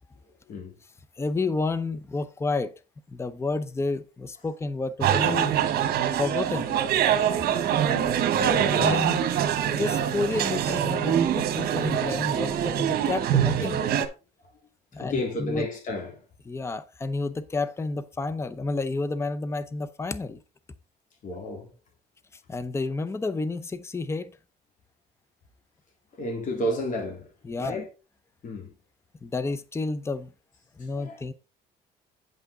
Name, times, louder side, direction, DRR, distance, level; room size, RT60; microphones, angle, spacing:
voice 1, 1.2-2.7 3.1-5.5 6.2-6.9 8.8-9.2 9.7-13.8 14.9-15.7 16.5-20.4 22.5-24.3 27.4-27.8 29.2-30.3 30.8-31.3, left 3 dB, 15° left, 0.6 m, -30 dB
sound 1, 5.0-14.1, right 9 dB, 65° right, 1.3 m, -24 dB
voice 2, 7.8-8.9 15.0-16.2 21.2-21.7 26.2-27.3 27.6-27.9 28.4-28.7 31.0-31.2, left 1 dB, 50° left, 3.5 m, -32 dB
9.2 x 5.8 x 3.9 m
cardioid pair, 110°, 17 cm